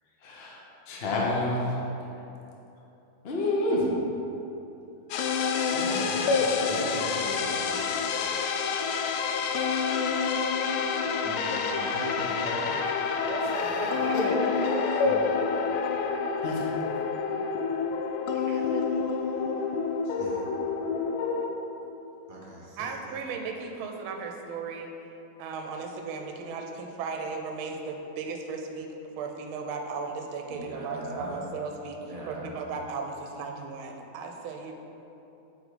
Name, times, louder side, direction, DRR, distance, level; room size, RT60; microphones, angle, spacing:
voice 1, 0.2-0.6 0.9-1.8 3.2-3.9 14.1-14.2 14.6-15.0 16.4-16.7, left 2 dB, 65° left, -3 dB, 0.6 m, -28 dB
sound 1, 5.1-21.5, left 5 dB, 90° left, 1.5 m, -28 dB
voice 2, 5.7-7.7 11.2-12.9 14.9-15.2 20.0-20.4 22.3-23.2 30.5-31.4 32.0-32.6, right 2 dB, 55° right, -4 dB, 1.0 m, -40 dB
voice 3, 13.2-14.6 18.3-18.8 22.8-24.9 25.4-28.9 29.2-32.0 32.3-34.7, right 4 dB, 75° right, 3 dB, 1.4 m, -36 dB
8.0 x 3.8 x 4.9 m, 3.0 s
omnidirectional pair, 2.4 m